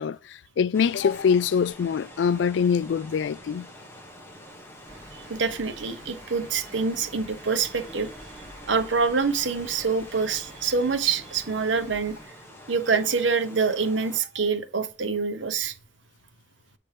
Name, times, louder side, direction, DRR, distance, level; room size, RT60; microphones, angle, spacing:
voice 1, 0.0-3.7, left 6 dB, 75° left, 0.3 m, -24 dB
sound 1, 0.7-14.2, left 1 dB, 15° left, 1.2 m, -46 dB
sound 2, 4.9-12.2, right 1 dB, 25° right, 2.2 m, -48 dB
voice 2, 5.1-8.1 8.7-12.2 12.7-15.7, right 5 dB, 85° right, 0.9 m, -26 dB
7.6 x 4.3 x 3.3 m
head